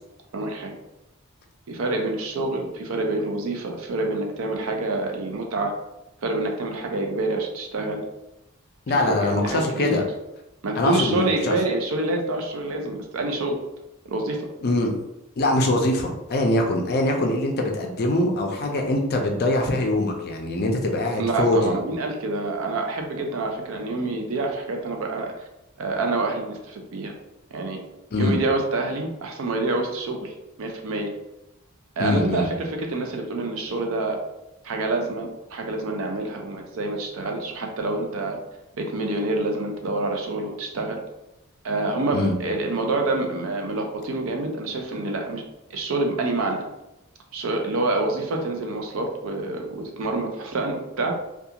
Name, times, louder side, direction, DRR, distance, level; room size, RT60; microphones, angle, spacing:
voice 1, 0.3-0.8 1.7-5.7 6.2-8.0 9.0-10.1 10.6-13.6 14.1-14.5 21.1-25.3 25.8-27.1 27.5-27.8 28.2-31.1 32.0-34.2 34.6-38.4 38.8-41.0 41.6-45.4 45.7-46.6 47.3-51.2, right 2 dB, 65° right, 3 dB, 0.4 m, -27 dB
voice 2, 8.9-10.0 10.8-11.6 14.6-14.9 15.4-21.8 28.1-28.4 32.0-32.5 42.1-42.3, left 1 dB, 45° left, 2 dB, 0.4 m, -23 dB
2.3 x 2.3 x 2.8 m, 0.92 s
head